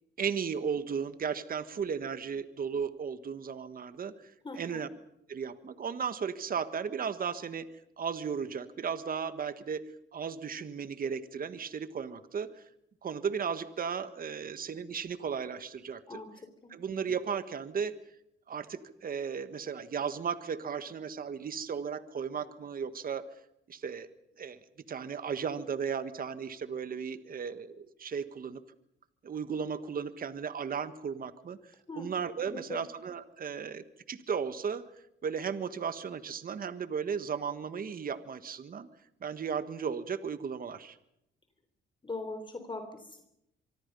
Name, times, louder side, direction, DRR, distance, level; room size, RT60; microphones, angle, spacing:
voice 1, 0.2-4.9 5.3-7.7 8.0-9.8 10.1-12.5 13.0-16.2 16.7-18.0 18.5-23.3 23.7-24.1 24.4-24.6 24.9-28.6 29.2-34.8 35.2-38.9 39.2-41.0, right 6 dB, 45° right, 12 dB, 1.6 m, -35 dB
voice 2, 4.4-4.8 16.1-16.3 16.6-16.7 31.9-32.1 32.5-32.8 42.0-43.2, left 2 dB, 25° left, 6 dB, 3.6 m, -40 dB
25.0 x 24.5 x 5.5 m, 0.78 s
cardioid pair, 90°, 20 cm